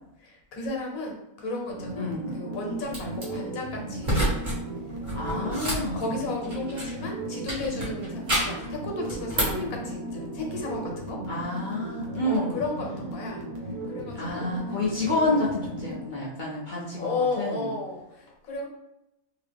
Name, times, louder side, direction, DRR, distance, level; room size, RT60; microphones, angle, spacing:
voice 1, 0.2-4.4 5.3-11.2 12.2-13.4 13.9-14.5 17.0-18.7, left 2 dB, 80° left, 0 dB, 1.2 m, -34 dB
sound 1, 1.7-16.0, right 2 dB, 80° right, 1.3 m, -36 dB
voice 2, 2.0-2.3 5.1-6.2 11.3-12.7 14.2-17.7, left 2 dB, 50° left, -5 dB, 0.6 m, -29 dB
sound 2, 2.9-3.2 4.0-4.6 4.9-7.0 7.5-8.7 9.1-9.7, right 1 dB, 35° right, 1.1 m, -29 dB
2.8 x 2.8 x 3.3 m, 0.90 s
omnidirectional pair, 1.5 m